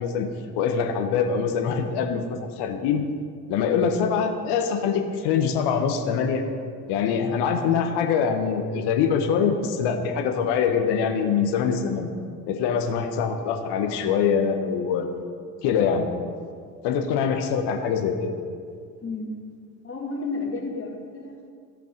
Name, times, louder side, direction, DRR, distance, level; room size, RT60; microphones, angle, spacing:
voice 1, 0.0-3.0 3.5-6.4 6.9-12.1 12.5-15.1 15.6-16.1 16.8-18.3, left 6 dB, 60° left, 5 dB, 1.3 m, -24 dB
voice 2, 19.0-19.3 19.8-21.5, left 3 dB, 25° left, 0 dB, 2.0 m, -32 dB
15.0 x 5.3 x 5.2 m, 2.2 s
hypercardioid pair, 65°, 47 cm